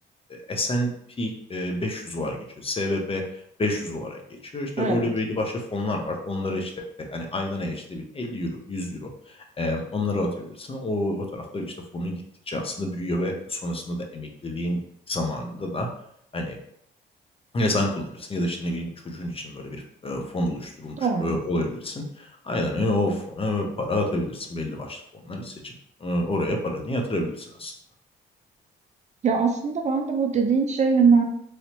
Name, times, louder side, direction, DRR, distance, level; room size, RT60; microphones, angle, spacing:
voice 1, 0.3-0.9 1.2-14.8 15.1-15.9 16.3-16.6 17.5-25.7 26.0-27.7, left 1 dB, 30° left, 2 dB, 0.6 m, -29 dB
voice 2, 4.8-5.1 21.0-21.3 29.2-31.2, right 5 dB, 35° right, 4 dB, 0.5 m, -21 dB
3.1 x 2.8 x 2.9 m, 0.70 s
cardioid pair, 90°, 20 cm